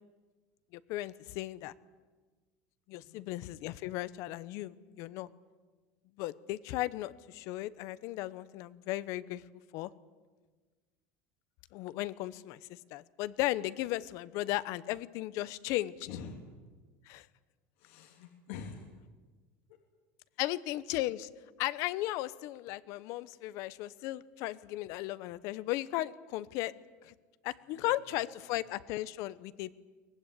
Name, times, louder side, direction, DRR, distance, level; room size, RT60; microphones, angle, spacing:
voice 1, 0.7-1.7 2.9-5.3 6.2-9.4 9.7-9.9 11.7-16.1 17.1-17.3 20.4-21.3 21.6-26.7 27.0-27.1 27.4-29.7, left 16 dB, 50° left, 16 dB, 0.9 m, -36 dB
voice 2, 2.9-3.2 16.0-16.4 17.8-18.9 20.3-20.4 27.7-28.0 28.4-28.5, left 6 dB, 65° left, 2 dB, 2.9 m, -46 dB
23.5 x 19.0 x 10.0 m, 1.4 s
cardioid pair, 170°, 7 cm